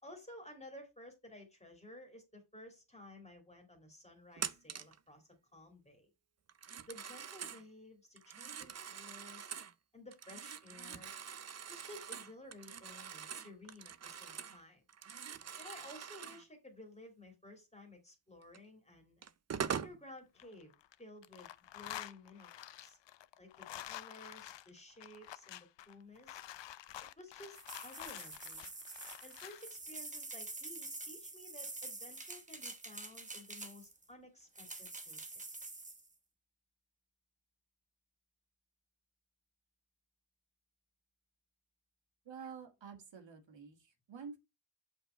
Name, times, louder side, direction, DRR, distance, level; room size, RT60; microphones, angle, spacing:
voice 1, 0.0-6.1 6.9-9.5 9.9-11.1 11.7-14.8 15.6-19.2 19.7-23.0 23.4-26.4 27.0-28.7 29.2-35.3 35.6-35.7, left 1 dB, 15° left, 2.3 m, -55 dB
Telephone, 4.4-5.0 6.5-7.6 8.2-9.7 10.1-14.6 14.9-16.4 18.5-18.6 19.2-20.0, right 7 dB, 35° right, 0.5 m, -44 dB
sound 1, 20.2-21.0 21.2-29.7, left 12 dB, 70° left, 0.6 m, -49 dB
sound 2, 27.5-34.0 34.6-36.1, right 2 dB, 15° right, 1.0 m, -47 dB
voice 2, 42.3-44.4, right 6 dB, 75° right, 2.0 m, -49 dB
7.9 x 4.6 x 4.3 m
wide cardioid pair, 150°, 45 cm